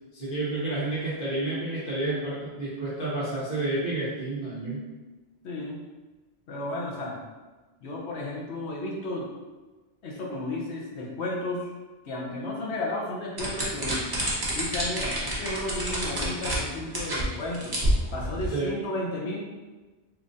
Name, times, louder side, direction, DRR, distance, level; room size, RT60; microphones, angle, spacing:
voice 1, 0.1-4.8 18.5-18.7, right 2 dB, 55° left, -10 dB, 1.4 m, -30 dB
voice 2, 5.4-5.8 6.5-7.2 7.8-9.3 10.0-11.7 12.0-14.1 14.5-17.8 18.1-19.4, left 1 dB, 75° left, -1 dB, 1.0 m, -33 dB
sound 1, 13.4-16.6 16.9-17.2 17.5-18.5, right 1 dB, 25° right, 0.7 m, -28 dB
3.8 x 3.0 x 2.5 m, 1.2 s
omnidirectional pair, 1.1 m